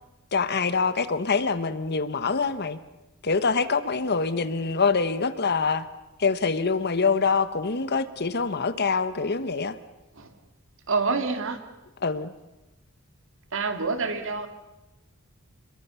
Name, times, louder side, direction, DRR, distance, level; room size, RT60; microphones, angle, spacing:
voice 1, 0.3-2.8 3.2-5.9 6.2-9.8 12.0-12.3, left 4 dB, 50° left, 13 dB, 1.2 m, -25 dB
voice 2, 10.9-11.6 13.5-14.5, right 4 dB, 65° right, 8 dB, 2.3 m, -27 dB
27.5 x 22.5 x 7.0 m, 1.0 s
head